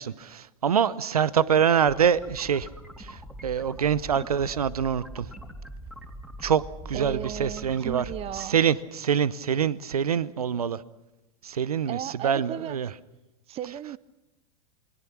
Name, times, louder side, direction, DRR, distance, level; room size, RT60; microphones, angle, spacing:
voice 1, 0.0-2.7 3.0-5.3 6.4-6.6 6.9-8.0 8.3-10.8 11.4-12.9, right 8 dB, 90° right, 0.8 m, -25 dB
sound 1, 1.4-8.5, equal, 5° right, 3.4 m, -42 dB
voice 2, 6.9-8.6 11.9-12.8 13.5-14.0, right 11 dB, 30° right, 0.7 m, -35 dB
28.5 x 21.0 x 6.1 m
hypercardioid pair, 105°, 19 cm